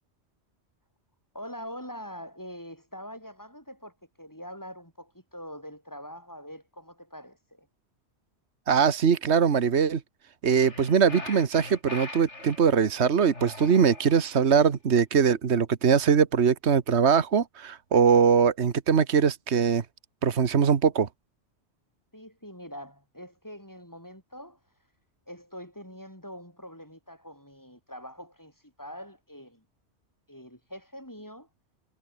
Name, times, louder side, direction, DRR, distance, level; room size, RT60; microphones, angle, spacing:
voice 1, 1.3-7.7 22.1-24.6 25.3-29.6 30.3-31.5, equal, 15° left, 7.9 m, -44 dB
voice 2, 8.7-10.0 10.4-19.8 20.2-21.1, right 6 dB, 75° right, 1.6 m, -22 dB
sound 1, 10.5-12.6 13.3-14.5, left 2 dB, 90° left, 4.7 m, -41 dB
omnidirectional pair, 1.2 m